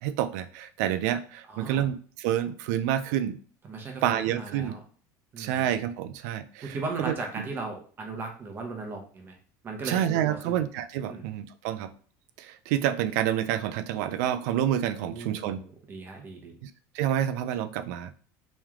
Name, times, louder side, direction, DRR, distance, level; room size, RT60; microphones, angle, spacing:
voice 1, 0.0-3.4 4.0-4.7 5.4-6.8 7.1-7.2 9.8-11.9 12.4-15.6 16.6-18.1, right 11 dB, 80° right, 11 dB, 0.4 m, -28 dB
voice 2, 1.5-1.9 3.6-4.8 5.3-5.7 6.7-9.3 9.6-10.6 11.1-11.2 15.0-16.6, right 3 dB, 25° right, 2 dB, 0.8 m, -37 dB
3.2 x 3.1 x 3.6 m, 0.42 s
cardioid pair, 165°, 9 cm